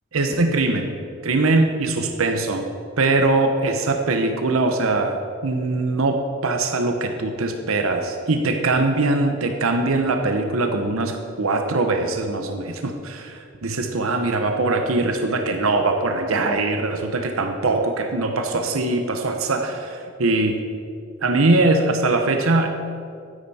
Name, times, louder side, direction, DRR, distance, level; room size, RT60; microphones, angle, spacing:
voice 1, 0.1-1.0 1.2-2.6 3.0-20.6 21.2-22.7, right 2 dB, 80° right, 5 dB, 0.8 m, -22 dB
12.0 x 10.0 x 4.2 m, 2.4 s
head